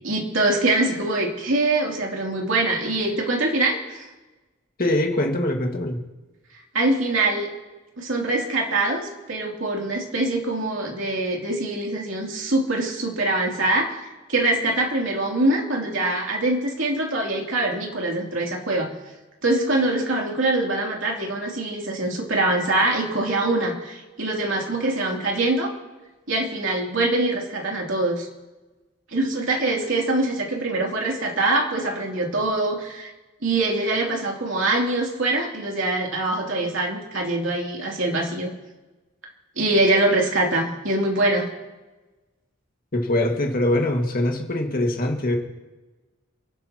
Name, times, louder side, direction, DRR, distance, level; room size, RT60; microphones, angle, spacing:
voice 1, 0.0-4.1 6.7-7.5 8.0-13.9 14.3-18.9 19.4-25.7 26.3-28.3 29.1-33.1 33.4-38.5 39.6-41.5, right 2 dB, 65° right, -1 dB, 3.1 m, -23 dB
voice 2, 4.8-6.0 42.9-45.4, left 1 dB, 45° left, 2 dB, 2.0 m, -23 dB
30.0 x 12.0 x 3.0 m, 1.1 s
head